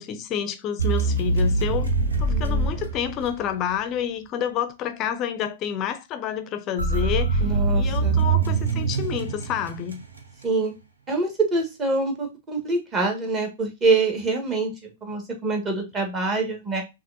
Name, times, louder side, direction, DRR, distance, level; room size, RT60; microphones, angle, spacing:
voice 1, 0.0-1.9 2.2-7.4 7.7-10.0, left 9 dB, 30° left, 0.5 m, -29 dB
sound 1, 0.8-3.8 6.8-10.2, right 3 dB, 80° right, 1.1 m, -23 dB
voice 2, 2.3-2.7 7.4-8.2 10.4-10.7 11.1-16.8, right 3 dB, 25° right, 1.5 m, -25 dB
5.9 x 2.5 x 2.5 m
figure-of-eight pair, 110°, 0 cm